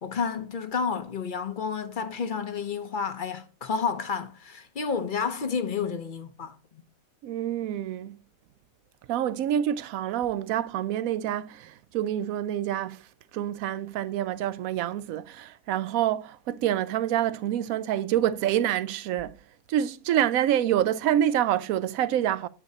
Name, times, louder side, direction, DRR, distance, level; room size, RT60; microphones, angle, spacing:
voice 1, 0.0-6.8, left 5 dB, 45° left, 0.7 m, -30 dB
voice 2, 7.2-8.2 9.1-13.0 13.3-19.3 19.7-22.5, right 11 dB, 85° right, 1.0 m, -27 dB
9.7 x 8.4 x 2.7 m
omnidirectional pair, 1.4 m